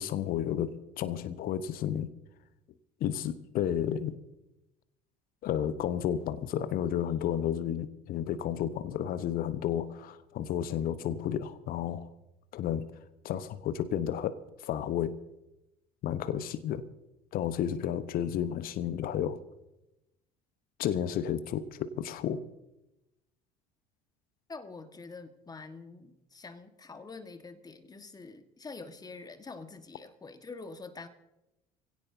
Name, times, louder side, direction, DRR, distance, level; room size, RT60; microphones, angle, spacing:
voice 1, 0.0-2.1 3.0-4.2 5.4-12.1 12.5-12.9 13.2-14.4 14.6-15.2 16.0-16.9 17.3-19.4 20.8-22.4, left 10 dB, 50° left, 14 dB, 1.0 m, -32 dB
voice 2, 24.5-31.1, left 4 dB, 20° left, 9 dB, 1.6 m, -46 dB
24.0 x 17.0 x 2.8 m, 0.92 s
figure-of-eight pair, 65°, 20 cm